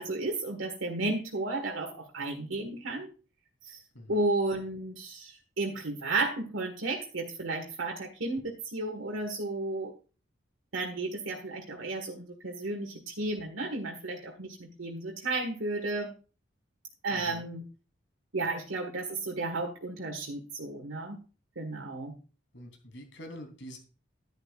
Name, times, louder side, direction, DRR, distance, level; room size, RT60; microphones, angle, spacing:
voice 1, 0.0-3.1 3.6-3.8 4.1-9.9 10.7-16.1 17.0-17.6 18.3-21.2 21.6-22.1, right 2 dB, 90° right, 1 dB, 1.8 m, -33 dB
voice 2, 17.1-17.4 22.5-23.8, equal, 65° left, 4 dB, 3.3 m, -45 dB
11.0 x 10.5 x 2.4 m, 0.34 s
head